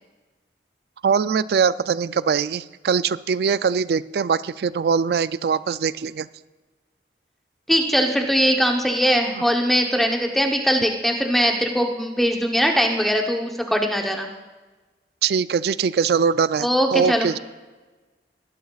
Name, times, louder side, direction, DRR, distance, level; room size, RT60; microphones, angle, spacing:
voice 1, 1.0-6.3 9.4-9.5 15.2-17.4, right 6 dB, 60° right, 16 dB, 0.3 m, -22 dB
voice 2, 7.7-14.3 16.6-17.3, equal, ahead, 2 dB, 0.9 m, -21 dB
20.0 x 12.0 x 2.4 m, 1.2 s
head